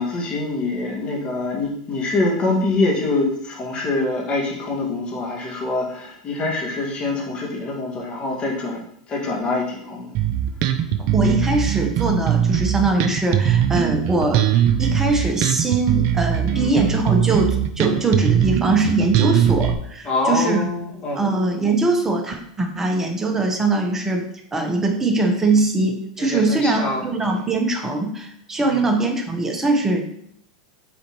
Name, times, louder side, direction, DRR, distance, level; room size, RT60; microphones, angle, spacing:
voice 1, 0.0-8.8 9.1-10.1 16.5-16.8 20.0-21.2 26.2-27.0 28.6-28.8, left 2 dB, 35° left, -2 dB, 2.0 m, -24 dB
Bass guitar, 10.1-19.7, right 10 dB, 55° right, 0.6 m, -20 dB
voice 2, 11.0-14.5 14.8-20.7 21.2-24.2 24.5-30.0, right 2 dB, 15° right, 3 dB, 1.1 m, -21 dB
6.9 x 4.3 x 3.1 m, 0.70 s
hypercardioid pair, 110°, 3 cm